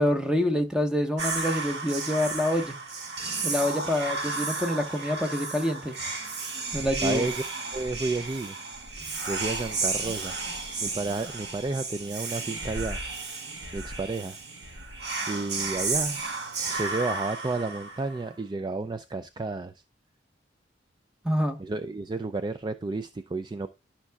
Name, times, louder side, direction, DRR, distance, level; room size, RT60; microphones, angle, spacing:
voice 1, 0.0-2.8 3.4-6.0 6.7-7.3 21.2-21.6, left 1 dB, 5° right, 1.1 m, -26 dB
Whispering, 1.2-18.3, right 3 dB, 65° right, 1.9 m, -33 dB
voice 2, 7.0-7.4 7.7-8.6 9.3-10.4 10.8-13.0 13.7-14.4 15.3-16.2 16.7-19.7 21.6-23.7, right 3 dB, 25° right, 0.4 m, -31 dB
12.5 x 5.7 x 2.3 m
head